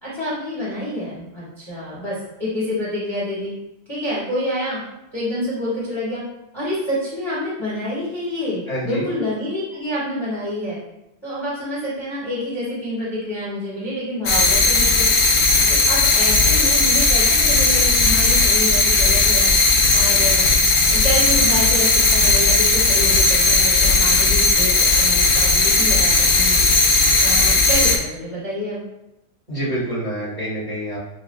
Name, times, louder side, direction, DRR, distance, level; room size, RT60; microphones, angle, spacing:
voice 1, 0.0-3.5 3.9-4.8 5.1-6.2 6.5-10.8 11.2-15.1 15.7-19.5 19.9-20.5 20.9-26.6 27.2-28.8, left 1 dB, 15° left, -8 dB, 0.9 m, -27 dB
voice 2, 8.7-9.0 29.5-31.0, right 1 dB, 20° right, -8 dB, 1.2 m, -26 dB
sound 1, 14.3-28.0, left 3 dB, 65° left, 1.2 m, -16 dB
7.0 x 2.4 x 2.2 m, 0.89 s
omnidirectional pair, 2.3 m